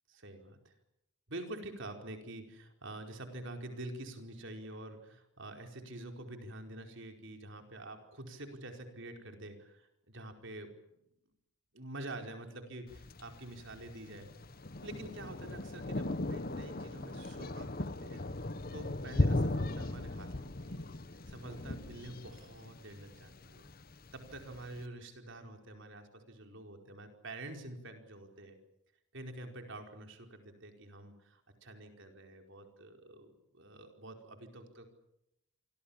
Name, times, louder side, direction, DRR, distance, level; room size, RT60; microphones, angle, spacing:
voice 1, 0.1-0.8 1.3-10.7 11.7-14.3 14.8-20.9 21.3-23.7 24.1-28.6 29.1-34.9, right 1 dB, 55° right, 4 dB, 4.7 m, -47 dB
Thunder, 12.9-24.8, left 2 dB, 40° left, 1.1 m, -37 dB
28.0 x 24.0 x 7.3 m, 0.82 s
head